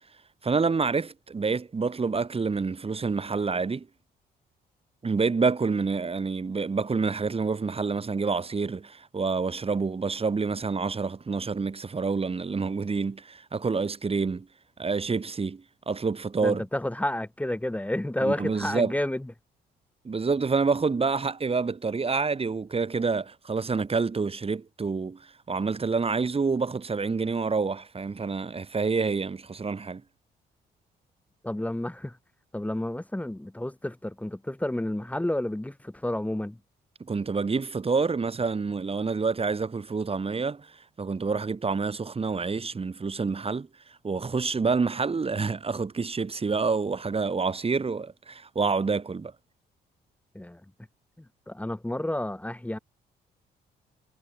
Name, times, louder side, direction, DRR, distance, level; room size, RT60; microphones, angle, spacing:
voice 1, 0.4-3.9 5.0-14.5 14.8-16.6 18.2-18.9 20.0-25.2 25.5-30.0 37.1-43.7 44.0-49.3, right 4 dB, 35° right, 5.7 m, -28 dB
voice 2, 16.4-19.3 31.4-32.2 32.5-36.6 50.3-50.6 51.2-52.8, left 1 dB, 10° left, 3.4 m, -30 dB
cardioid pair, 75°, 18 cm